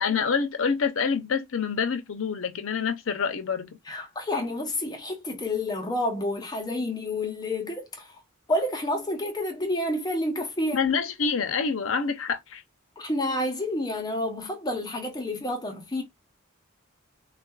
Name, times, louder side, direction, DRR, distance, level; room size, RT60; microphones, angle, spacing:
voice 1, 0.0-3.8 10.7-12.6, left 6 dB, 75° left, 0.6 m, -27 dB
voice 2, 3.9-8.1 8.5-10.8 13.0-16.0, left 1 dB, 20° left, 0.8 m, -29 dB
3.6 x 2.4 x 2.3 m
head